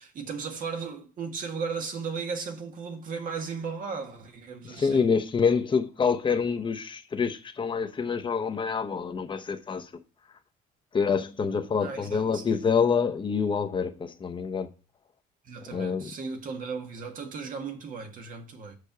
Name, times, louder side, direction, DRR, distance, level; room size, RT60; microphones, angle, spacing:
voice 1, 0.0-5.1 11.8-12.6 15.4-18.8, right 5 dB, 55° right, 1.7 m, -36 dB
voice 2, 4.6-9.9 10.9-14.7 15.7-16.1, left 6 dB, 30° left, 1.0 m, -26 dB
6.7 x 4.5 x 6.8 m
cardioid pair, 110°, 17 cm